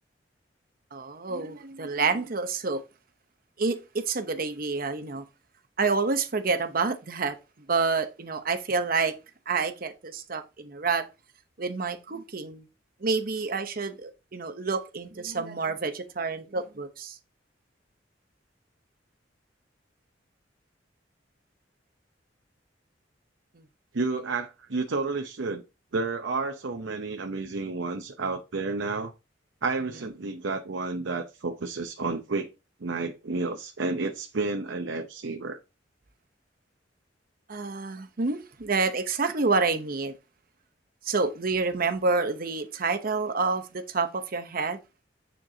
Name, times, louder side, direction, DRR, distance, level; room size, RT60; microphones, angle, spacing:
voice 1, 0.9-2.8 3.6-5.2 5.8-9.1 9.5-11.1 11.6-12.7 13.0-17.2 23.5-23.6 37.5-40.1 41.0-44.8, right 4 dB, 50° right, 0.9 m, -28 dB
voice 2, 23.9-25.6 25.9-29.1 29.6-32.5 32.8-35.6, right 3 dB, 90° right, 0.7 m, -31 dB
8.8 x 4.6 x 2.7 m
head